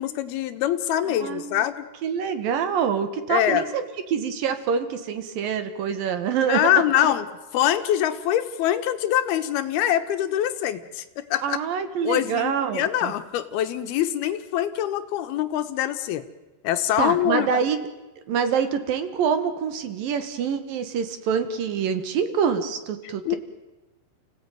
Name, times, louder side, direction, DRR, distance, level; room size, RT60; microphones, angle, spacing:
voice 1, 0.0-1.9 3.3-3.7 6.5-7.3 7.5-11.6 12.0-16.2 16.6-17.6 23.3-23.4, left 11 dB, 80° left, 10 dB, 2.9 m, -24 dB
voice 2, 1.2-1.6 2.0-3.8 4.1-6.7 7.0-7.1 11.4-13.1 17.0-17.8 18.3-23.4, right 7 dB, 65° right, 10 dB, 3.0 m, -25 dB
29.5 x 16.5 x 9.3 m, 1.1 s
omnidirectional pair, 4.6 m